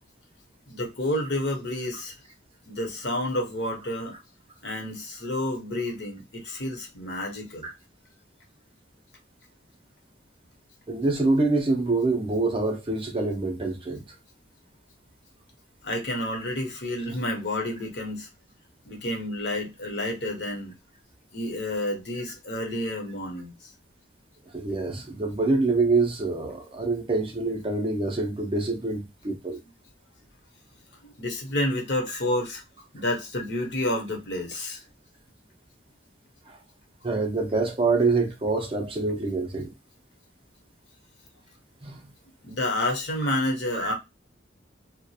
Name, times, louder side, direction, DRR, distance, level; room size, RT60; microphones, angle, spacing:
voice 1, 0.7-2.1 2.7-4.1 4.6-7.7 15.8-18.3 18.8-20.7 21.3-23.5 31.0-32.6 32.9-34.8 42.4-43.9, left 1 dB, 65° left, 0.8 m, -29 dB
voice 2, 10.9-14.0 24.5-29.6 37.0-39.7 41.8-41.9 43.7-43.9, right 3 dB, 25° right, 0.4 m, -25 dB
2.3 x 2.1 x 2.6 m
head